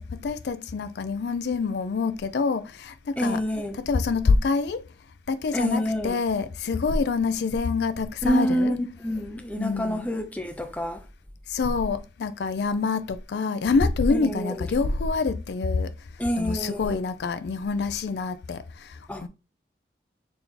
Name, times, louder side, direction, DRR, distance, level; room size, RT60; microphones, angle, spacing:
voice 1, 0.0-3.4 3.9-4.8 5.3-8.7 9.6-10.1 11.5-15.9 16.4-19.3, left 4 dB, 75° left, 0.4 m, -26 dB
voice 2, 3.2-3.8 5.5-6.2 8.2-11.0 14.1-14.7 16.2-17.0 19.1-19.3, equal, 10° left, 0.5 m, -27 dB
4.1 x 2.8 x 3.7 m
head